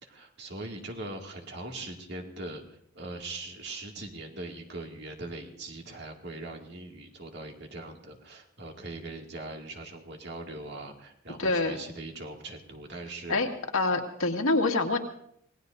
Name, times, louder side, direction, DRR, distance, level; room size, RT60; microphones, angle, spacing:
voice 1, 0.0-13.4, right 2 dB, 50° right, 2 dB, 2.2 m, -41 dB
voice 2, 11.4-11.8 13.3-13.5 13.7-15.0, left 2 dB, 80° left, 2 dB, 1.9 m, -25 dB
26.5 x 19.0 x 2.6 m, 0.69 s
head